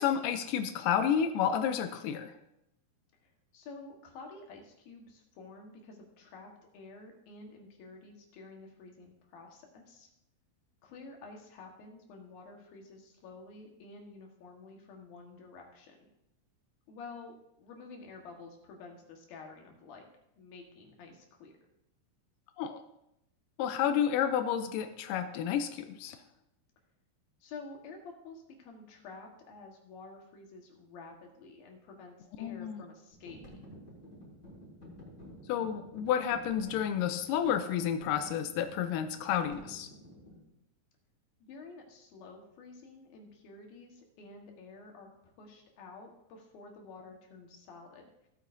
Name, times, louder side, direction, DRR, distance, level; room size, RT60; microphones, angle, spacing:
voice 1, 0.0-2.3 22.6-22.8 23.6-26.2 32.4-32.8 35.5-39.9, left 9 dB, 85° left, 8 dB, 1.9 m, -30 dB
voice 2, 3.2-10.1 10.8-16.1 16.9-20.0 20.4-21.5 27.4-33.8 41.4-48.1, left 3 dB, 70° left, 1 dB, 3.2 m, -50 dB
sound 1, 33.1-40.4, equal, 15° left, 4.1 m, -51 dB
16.5 x 9.0 x 2.7 m, 0.83 s
omnidirectional pair, 4.6 m